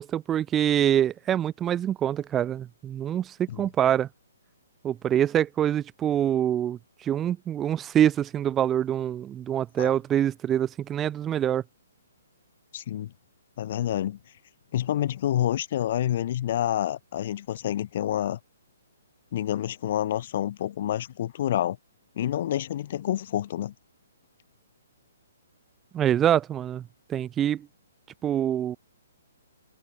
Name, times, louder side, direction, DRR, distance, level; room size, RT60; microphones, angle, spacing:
voice 1, 0.0-4.1 4.8-11.6 25.9-26.8 27.1-27.6 28.2-28.8, right 10 dB, 15° right, 1.4 m, -25 dB
voice 2, 12.7-13.1 13.6-14.2 14.7-18.4 19.3-21.8 22.1-23.7, left 11 dB, 50° left, 4.4 m, -28 dB
hypercardioid pair, 135°, 0 cm